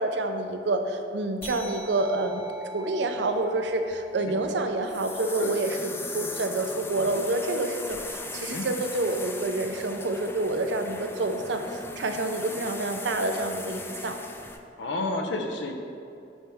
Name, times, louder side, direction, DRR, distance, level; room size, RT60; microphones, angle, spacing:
voice 1, 0.0-2.4 2.7-14.2, right 2 dB, 65° right, 6 dB, 0.6 m, -28 dB
sound 1, 1.4-6.3, equal, 30° left, 1.3 m, -45 dB
sound 2, 3.4-14.6, left 3 dB, 15° left, 0.3 m, -39 dB
voice 2, 14.8-15.7, left 2 dB, 90° left, 4 dB, 0.7 m, -30 dB
8.6 x 4.4 x 3.5 m, 2.6 s
head